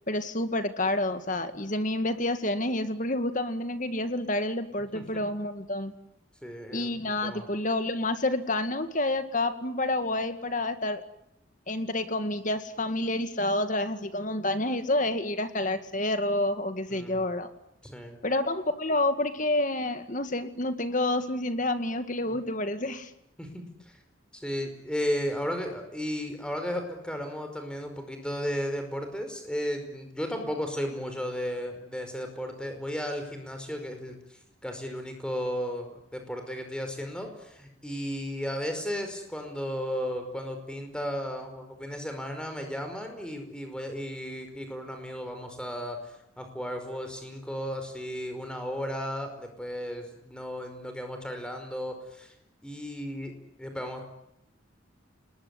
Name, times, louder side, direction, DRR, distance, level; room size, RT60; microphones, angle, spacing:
voice 1, 0.1-5.9 6.7-11.0 11.7-17.5 18.2-23.1, left 1 dB, 40° left, 9 dB, 2.1 m, -29 dB
voice 2, 6.4-7.5 16.9-17.2 17.8-18.2 22.3-22.4 23.4-24.0 24.3-52.3 52.6-54.0, equal, 5° left, 5 dB, 5.0 m, -34 dB
29.5 x 20.5 x 9.8 m, 0.83 s
head